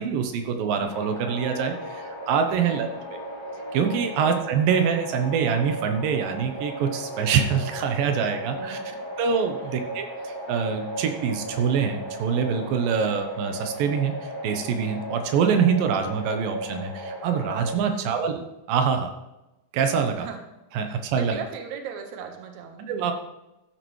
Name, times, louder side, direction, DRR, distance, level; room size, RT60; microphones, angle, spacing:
voice 1, 0.0-2.9 3.7-8.8 9.2-19.1 19.7-20.3 20.7-21.4 22.9-23.1, right 6 dB, 85° right, 5 dB, 2.7 m, -25 dB
sound 1, 0.8-17.8, equal, 10° right, 3.1 m, -36 dB
voice 2, 2.6-3.0 4.1-4.4 8.6-9.0 9.6-10.0 17.9-18.1 20.1-20.4 20.9-22.9, right 7 dB, 65° right, 4 dB, 2.4 m, -39 dB
13.5 x 10.5 x 3.2 m, 0.96 s
omnidirectional pair, 3.9 m